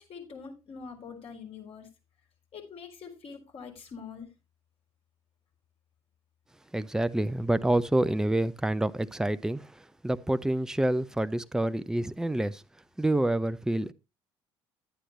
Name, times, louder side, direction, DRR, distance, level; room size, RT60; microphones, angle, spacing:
voice 1, 0.0-1.9 2.5-4.3, left 5 dB, 45° left, 4.1 m, -44 dB
voice 2, 6.7-12.6 13.0-13.9, right 1 dB, 5° right, 0.6 m, -27 dB
11.0 x 9.3 x 3.1 m
figure-of-eight pair, 55°, 14 cm